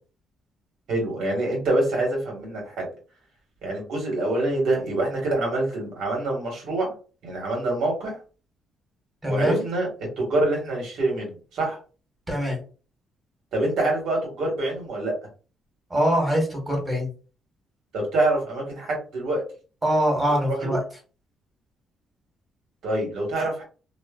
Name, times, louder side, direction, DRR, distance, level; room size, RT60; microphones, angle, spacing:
voice 1, 0.9-2.9 3.6-6.9 7.2-8.2 9.2-9.9 10.2-11.8 13.5-15.1 17.9-19.4 20.4-20.8 22.8-23.6, right 2 dB, 75° right, -1 dB, 1.5 m, -25 dB
voice 2, 9.2-9.6 12.3-12.6 15.9-17.1 19.8-20.8, equal, 15° right, 0 dB, 1.4 m, -23 dB
3.0 x 2.2 x 2.3 m, 0.37 s
cardioid pair, 90°, 0 cm